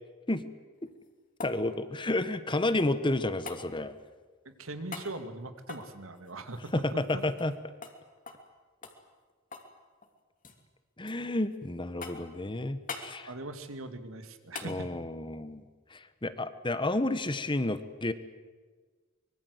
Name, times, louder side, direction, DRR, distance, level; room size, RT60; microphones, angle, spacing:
sound 1, 0.8-2.9 3.5-3.7 4.9-5.1 5.6-7.6 7.8-8.0 8.3-8.5 8.8-9.7 10.0-10.6 11.1-11.6 12.0-12.4 12.9-13.1 14.5-14.8 17.1-17.2, left 4 dB, 40° left, 2.9 m, -44 dB
voice 1, 1.4-3.9 6.7-7.5 11.0-13.3 14.6-15.7 15.9-18.1, left 2 dB, 25° left, 12 dB, 1.2 m, -31 dB
voice 2, 4.4-7.3 13.2-14.9, right 2 dB, 75° right, 8 dB, 2.2 m, -41 dB
24.5 x 22.0 x 8.1 m, 1.4 s
head